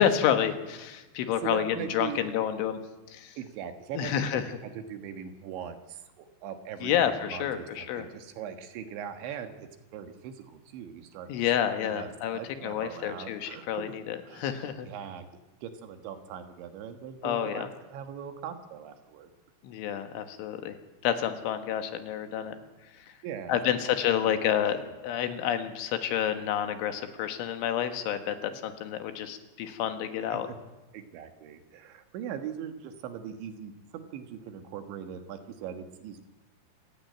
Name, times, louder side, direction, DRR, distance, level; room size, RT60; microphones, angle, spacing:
voice 1, 0.0-2.8 3.1-3.4 4.0-4.4 6.8-8.1 11.3-14.9 17.2-17.7 19.6-20.8 21.0-22.6 23.0-23.1 23.5-30.5, left 9 dB, 75° left, 8 dB, 3.8 m, -29 dB
voice 2, 1.4-2.3 3.4-11.3 11.8-14.0 14.3-15.3 15.6-19.3 23.2-23.8 24.1-24.4 24.8-24.9 28.3-28.6 30.3-30.6 30.9-36.2, right 8 dB, 70° right, 8 dB, 3.6 m, -41 dB
27.0 x 15.0 x 9.5 m, 1.1 s
omnidirectional pair, 5.8 m